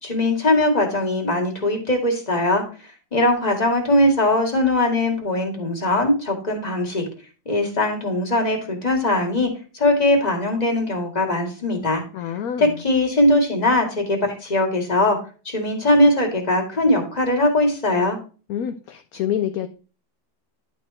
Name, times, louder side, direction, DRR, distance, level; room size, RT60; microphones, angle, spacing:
voice 1, 0.0-2.6 3.1-7.1 7.5-12.0 12.6-15.2 15.5-18.2, left 1 dB, 25° left, 2 dB, 2.1 m, -20 dB
voice 2, 12.1-12.8 18.5-19.7, left 10 dB, 65° left, 8 dB, 1.0 m, -27 dB
11.0 x 4.4 x 4.2 m, 0.35 s
omnidirectional pair, 1.9 m